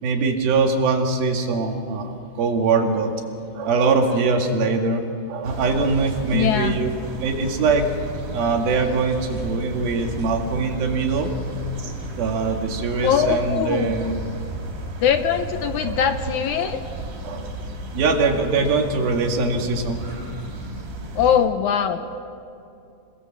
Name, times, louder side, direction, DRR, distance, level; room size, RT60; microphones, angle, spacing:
voice 1, 0.0-3.1 3.5-6.9 7.2-7.9 8.3-11.3 12.2-14.2 15.8-16.7 17.2-17.5 17.9-20.1 22.1-22.2, right 4 dB, 90° right, 3 dB, 3.9 m, -22 dB
sound 1, 5.4-21.4, right 2 dB, 70° right, 4.7 m, -33 dB
voice 2, 6.3-6.8 13.0-13.9 15.0-16.8 21.2-22.1, left 8 dB, 75° left, 8 dB, 1.9 m, -21 dB
28.5 x 20.0 x 7.5 m, 2.6 s
omnidirectional pair, 4.1 m